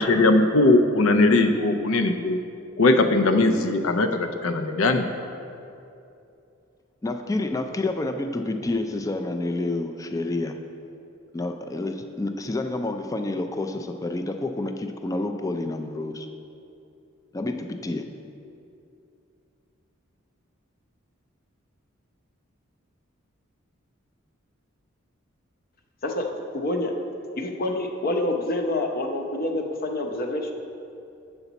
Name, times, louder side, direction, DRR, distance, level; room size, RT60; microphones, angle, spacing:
voice 1, 0.0-2.4 2.8-5.1, left 2 dB, 80° left, 8 dB, 0.6 m, -20 dB
voice 2, 7.0-10.6 11.3-16.3 17.3-18.1, left 2 dB, 15° left, 6 dB, 0.4 m, -29 dB
voice 3, 26.5-26.9 27.4-30.5, left 1 dB, 45° left, 3 dB, 0.7 m, -27 dB
8.0 x 7.0 x 4.1 m, 2.7 s
head